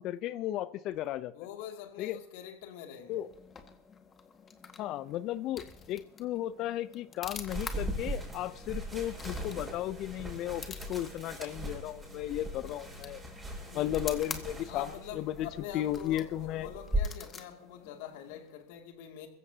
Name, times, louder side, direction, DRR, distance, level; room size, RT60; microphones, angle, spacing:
voice 1, 0.0-1.3 2.0-2.2 3.1-3.3 4.8-13.2 13.7-14.9 15.1-15.5 15.7-16.7, left 13 dB, 50° left, 0.6 m, -35 dB
voice 2, 1.3-3.2 13.6-14.1 14.7-19.3, left 10 dB, 65° left, 2.6 m, -45 dB
sound 1, 3.0-18.6, left 6 dB, 30° left, 1.8 m, -48 dB
sound 2, 7.5-17.0, right 1 dB, 10° right, 6.3 m, -39 dB
22.5 x 15.0 x 2.9 m
hypercardioid pair, 95°, 0 cm